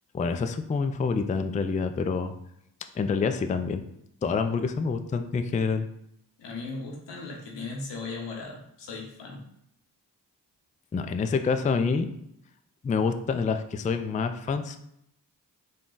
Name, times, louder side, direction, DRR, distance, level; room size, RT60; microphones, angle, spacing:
voice 1, 0.1-2.3 3.0-3.8 4.2-5.9 10.9-12.1 12.8-14.8, left 5 dB, 20° left, 8 dB, 0.3 m, -27 dB
voice 2, 6.4-9.4, left 3 dB, 85° left, 0 dB, 0.9 m, -37 dB
3.8 x 2.3 x 3.8 m, 0.76 s
cardioid pair, 40°, 42 cm